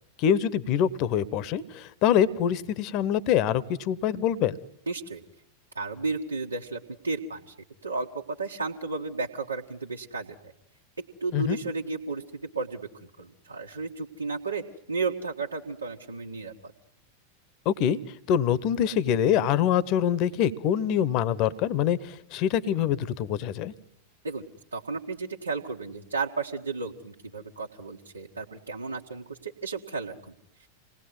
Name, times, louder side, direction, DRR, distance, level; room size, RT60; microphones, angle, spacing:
voice 1, 0.2-4.6 11.3-11.6 17.6-18.0 18.3-23.7, left 9 dB, 40° left, 21 dB, 1.0 m, -25 dB
voice 2, 4.9-5.2 5.7-7.5 7.8-10.5 11.2-12.9 13.2-16.7 24.2-24.4 24.7-30.3 30.6-30.7, right 4 dB, 80° right, -2 dB, 1.6 m, -33 dB
28.0 x 19.0 x 9.5 m, 0.80 s
figure-of-eight pair, 90°, 0 cm